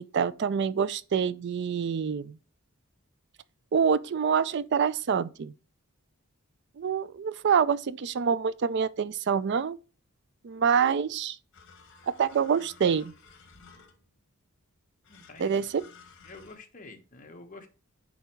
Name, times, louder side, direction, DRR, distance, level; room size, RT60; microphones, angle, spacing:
voice 1, 0.0-2.4 3.7-5.5 6.8-9.8 10.4-11.4 12.2-13.1 15.4-15.8, right 6 dB, 55° right, 0.4 m, -26 dB
sound 1, 11.5-14.2 15.0-16.6, left 5 dB, 60° left, 1.4 m, -54 dB
voice 2, 15.1-15.6 16.2-17.7, left 3 dB, 40° left, 1.1 m, -48 dB
9.1 x 3.6 x 4.5 m
head